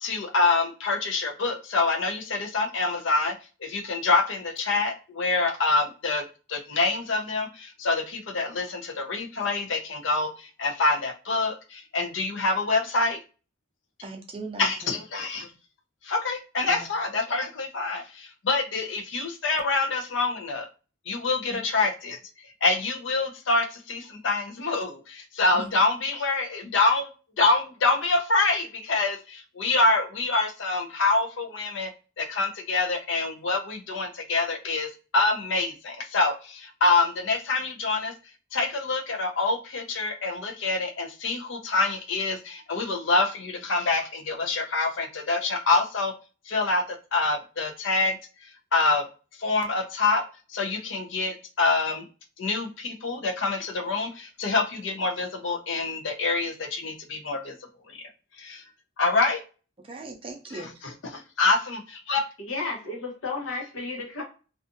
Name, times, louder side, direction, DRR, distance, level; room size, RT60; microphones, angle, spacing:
voice 1, 0.0-3.3 3.6-6.2 6.5-13.2 14.6-15.5 16.0-20.7 21.1-22.2 22.6-27.1 27.4-31.9 32.2-38.1 38.5-46.1 46.5-48.2 48.7-49.0 49.4-50.2 50.5-52.0 52.4-57.5 57.9-58.1 58.4-58.6 59.0-59.4 61.1-62.2, left 3 dB, 70° left, 0.5 m, -26 dB
voice 2, 14.0-14.9 16.7-16.9 25.5-25.7 59.8-60.8, right 3 dB, 25° right, 0.4 m, -39 dB
voice 3, 62.4-64.2, left 3 dB, 85° left, 0.9 m, -33 dB
2.5 x 2.4 x 2.5 m
head